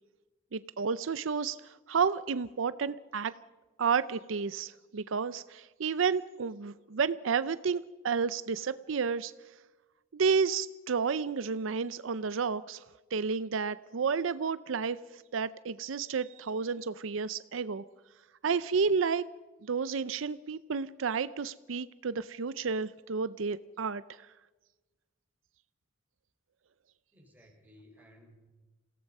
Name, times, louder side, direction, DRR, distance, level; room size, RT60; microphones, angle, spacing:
voice 1, 0.5-3.3 3.8-9.3 10.1-12.8 13.1-17.8 18.4-19.2 19.6-24.0, right 5 dB, 75° right, 15 dB, 0.5 m, -31 dB
voice 2, 27.1-28.5, equal, 10° right, -1 dB, 5.1 m, -58 dB
27.5 x 17.0 x 5.4 m, 1.2 s
head